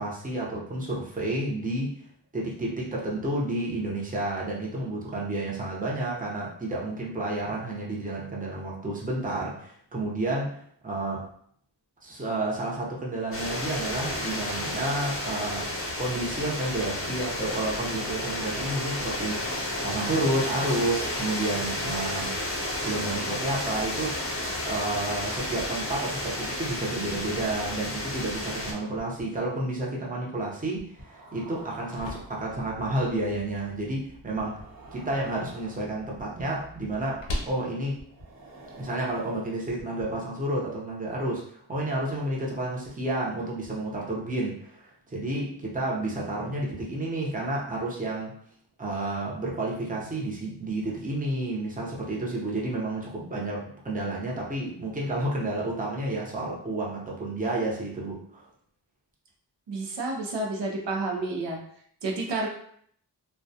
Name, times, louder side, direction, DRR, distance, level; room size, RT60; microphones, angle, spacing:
voice 1, 0.0-1.9 2.3-10.6 10.8-11.3 12.0-15.7 16.0-22.3 22.8-24.2 24.7-34.6 34.9-38.0 38.8-48.3 48.8-58.4, right 2 dB, 20° right, -4 dB, 0.7 m, -30 dB
sound 1, 13.3-28.7, left 1 dB, 30° left, 0.7 m, -32 dB
sound 2, 25.4-25.6 26.9-28.5 29.0-29.2 30.8-32.8 34.4-36.4 38.0-40.0, right 2 dB, 50° right, 1.0 m, -48 dB
sound 3, 31.5-39.4, left 1 dB, 85° left, 0.5 m, -42 dB
voice 2, 59.7-61.6 62.0-62.5, right 2 dB, 80° right, 0 dB, 0.6 m, -30 dB
2.2 x 2.2 x 2.6 m, 0.63 s
wide cardioid pair, 45°, 43 cm